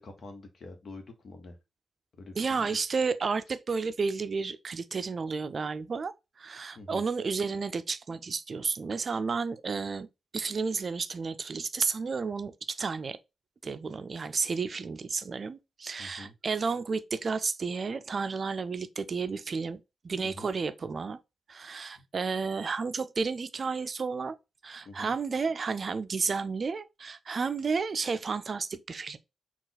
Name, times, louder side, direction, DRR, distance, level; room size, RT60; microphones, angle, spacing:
voice 1, 0.0-1.6 2.2-2.8 6.7-7.1 16.0-16.3 20.2-20.5 22.0-22.1 24.8-25.1, left 2 dB, 65° left, 1.1 m, -46 dB
voice 2, 2.4-6.1 6.4-10.1 10.3-13.2 13.6-19.8 20.0-21.2 21.5-24.4 24.6-29.2, right 5 dB, 55° right, 0.4 m, -32 dB
4.0 x 2.4 x 3.9 m
supercardioid pair, 45°, 0 cm